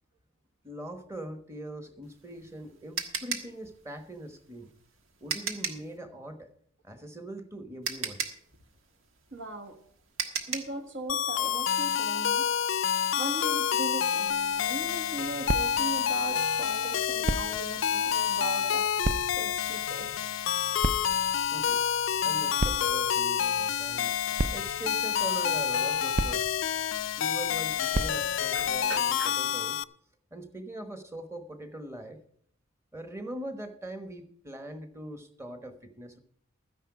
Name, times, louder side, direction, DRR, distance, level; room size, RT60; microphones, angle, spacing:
voice 1, 0.6-4.7 5.2-6.5 6.8-8.2 21.5-21.8 22.2-24.2 24.5-26.4 27.2-29.8 30.3-32.2 32.9-36.2, right 1 dB, 15° right, 8 dB, 1.1 m, -41 dB
sound 1, 2.1-5.9 7.3-7.4 7.8-10.8, right 6 dB, 80° right, 1.5 m, -35 dB
voice 2, 9.3-9.8 10.5-12.5 13.2-18.9 19.3-20.2 28.5-29.4, right 2 dB, 65° right, 6 dB, 1.5 m, -39 dB
sound 2, 11.1-29.8, left 8 dB, 70° left, 0.4 m, -28 dB
sound 3, 14.3-28.8, right 2 dB, 35° right, 0.5 m, -37 dB
13.5 x 10.0 x 4.8 m, 0.65 s
head